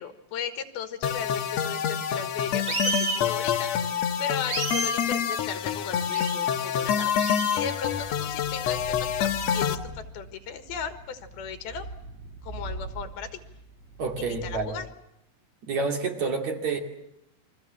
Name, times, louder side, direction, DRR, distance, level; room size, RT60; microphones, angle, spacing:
voice 1, 0.0-7.1 7.5-11.9 12.4-13.3 14.2-14.9, left 7 dB, 80° left, 9 dB, 3.5 m, -36 dB
sound 1, 1.0-9.7, left 8 dB, 60° left, 2.0 m, -27 dB
sound 2, 2.7-3.2 4.5-5.0 6.1-6.4 7.2-7.6, right 3 dB, 30° right, 2.1 m, -30 dB
Purr, 7.8-14.8, right 3 dB, 85° right, 7.7 m, -42 dB
voice 2, 14.0-14.8 15.6-16.8, right 4 dB, 50° right, 3 dB, 3.6 m, -29 dB
29.0 x 23.5 x 7.5 m, 0.82 s
omnidirectional pair, 4.4 m